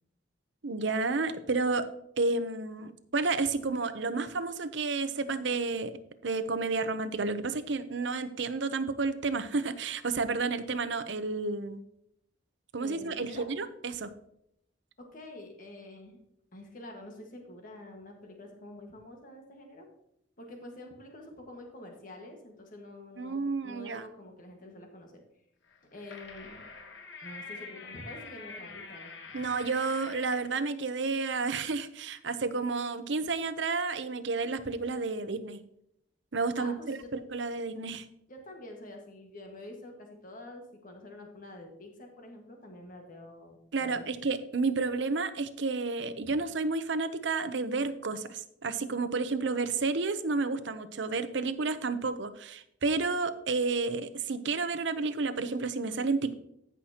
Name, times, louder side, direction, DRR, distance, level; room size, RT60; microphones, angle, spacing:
voice 1, 0.6-1.9 2.2-5.9 6.2-11.8 12.7-14.1 23.2-24.0 29.3-35.6 36.3-38.1 43.7-56.4, right 3 dB, 70° right, 11 dB, 0.7 m, -31 dB
voice 2, 12.8-13.5 15.0-16.2 16.5-19.9 20.4-25.2 25.9-26.6 27.2-29.4 36.5-37.1 38.3-44.0 46.2-46.4, left 1 dB, 45° left, 2 dB, 1.7 m, -47 dB
sound 1, 25.7-30.5, left 4 dB, 70° left, 1.3 m, -46 dB
15.0 x 5.8 x 2.9 m, 0.77 s
head